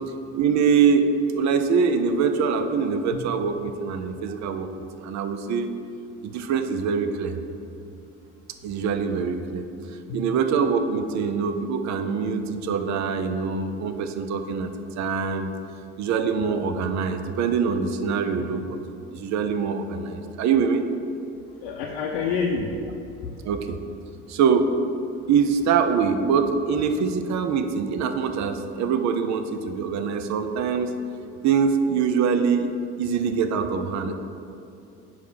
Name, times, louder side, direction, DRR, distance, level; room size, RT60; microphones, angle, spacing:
voice 1, 0.3-1.1 1.3-5.7 6.2-7.4 8.6-9.7 10.1-14.7 15.0-15.5 16.0-18.6 19.1-20.8 23.4-23.8 24.3-24.7 25.3-31.0 31.4-32.7 33.0-34.1, right 6 dB, 50° right, 8 dB, 0.6 m, -24 dB
voice 2, 21.6-22.7 23.2-23.3, left 5 dB, 75° left, -1 dB, 0.6 m, -28 dB
4.7 x 4.5 x 5.4 m, 2.7 s
hypercardioid pair, 65°, 36 cm